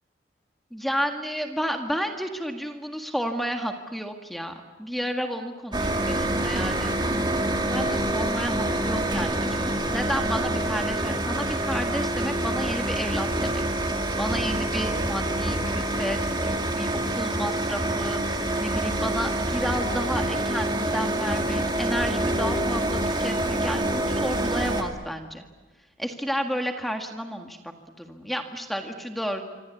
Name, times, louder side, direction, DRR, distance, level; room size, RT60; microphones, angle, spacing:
voice 1, 0.7-7.3 7.6-13.6 13.9-25.4 26.0-29.4, equal, ahead, 4 dB, 1.7 m, -31 dB
sound 1, 5.7-24.8, right 1 dB, 25° right, 2.5 m, -26 dB
26.0 x 26.0 x 8.4 m, 1.2 s
head